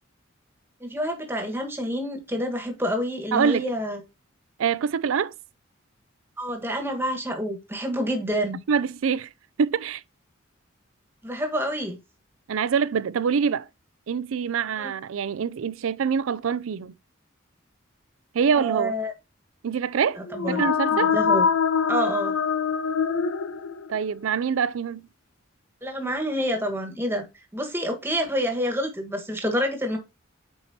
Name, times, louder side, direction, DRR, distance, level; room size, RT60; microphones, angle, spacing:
voice 1, 0.8-4.0 6.4-8.6 11.2-12.0 14.8-14.9 18.6-19.1 20.2-21.5 21.9-22.3 25.8-27.2 27.5-30.0, equal, 10° right, 1.4 m, -28 dB
voice 2, 3.3-3.7 4.6-5.3 8.7-9.3 9.6-10.0 12.5-13.7 14.1-16.9 18.3-18.9 19.6-21.1 23.9-25.0, right 6 dB, 80° right, 0.4 m, -25 dB
sound 1, 20.3-24.1, left 6 dB, 85° left, 0.6 m, -24 dB
8.2 x 4.6 x 2.8 m
head